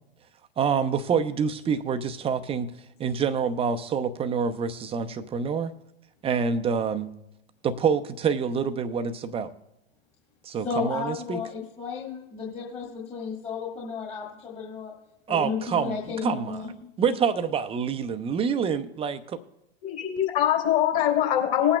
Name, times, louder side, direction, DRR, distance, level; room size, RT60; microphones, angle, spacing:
voice 1, 0.6-2.7 3.0-5.7 6.2-7.1 7.6-9.5 10.4-11.4 15.3-15.9 16.2-16.7 17.0-19.4, right 6 dB, 15° right, 9 dB, 0.7 m, -26 dB
voice 2, 10.6-14.9 15.3-16.7, left 5 dB, 20° left, -3 dB, 1.8 m, -33 dB
voice 3, 19.8-21.8, left 11 dB, 45° left, 0 dB, 3.5 m, -23 dB
20.0 x 8.6 x 2.3 m, 0.92 s
figure-of-eight pair, 100°, 34 cm